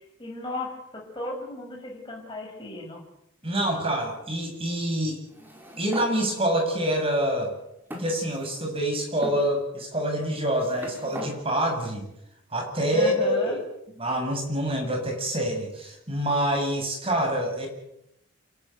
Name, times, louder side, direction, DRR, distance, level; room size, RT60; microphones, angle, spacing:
voice 1, 0.2-3.0 12.9-13.6, left 2 dB, 20° left, -1 dB, 6.0 m, -35 dB
voice 2, 3.4-5.2 5.8-7.5 8.0-12.0 12.5-13.6 14.0-17.7, right 1 dB, 25° right, 2 dB, 7.5 m, -26 dB
sound 1, 5.3-6.1 7.0-7.1 7.9-8.7 9.2-9.4 10.3-11.3, equal, 10° right, 4.8 m, -39 dB
28.5 x 14.0 x 9.3 m, 0.81 s
head